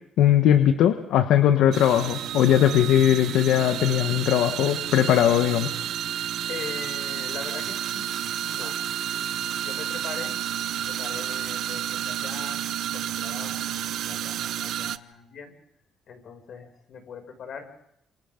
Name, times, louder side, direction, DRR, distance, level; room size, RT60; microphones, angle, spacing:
voice 1, 0.2-5.7, left 11 dB, 85° left, 7 dB, 1.2 m, -20 dB
sound 1, 1.7-15.0, right 11 dB, 75° right, 0.8 m, -31 dB
voice 2, 6.5-8.8 9.1-10.4 10.7-12.7 12.9-15.6 16.1-17.7, left 6 dB, 65° left, 5 dB, 6.5 m, -41 dB
28.0 x 27.0 x 3.9 m, 0.77 s
cardioid pair, 90°, 0 cm